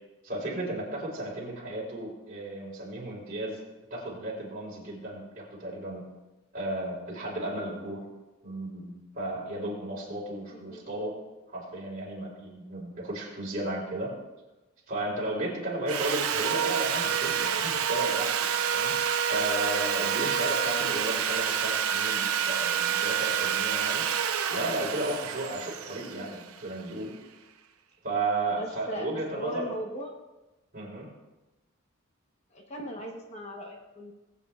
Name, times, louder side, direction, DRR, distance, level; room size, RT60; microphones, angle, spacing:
voice 1, 0.2-3.6 3.9-6.0 6.5-8.0 8.4-11.1 11.5-14.1 14.9-18.9 19.3-24.0 24.5-27.1 28.0-29.7 30.7-31.1, right 1 dB, 40° right, -3 dB, 3.4 m, -34 dB
voice 2, 10.5-10.9 26.0-26.3 28.5-30.1 32.5-34.1, equal, 30° left, 2 dB, 1.0 m, -39 dB
Sawing, 15.9-26.9, right 8 dB, 90° right, 0.7 m, -28 dB
20.0 x 8.5 x 2.4 m, 1.1 s
head